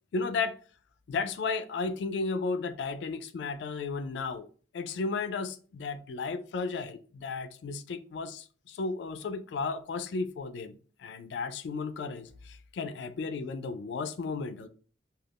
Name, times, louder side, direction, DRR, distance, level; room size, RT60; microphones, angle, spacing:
voice 1, 0.1-0.5 1.1-4.5 4.7-14.7, left 4 dB, 65° left, 0.3 m, -34 dB
2.4 x 2.3 x 3.4 m
head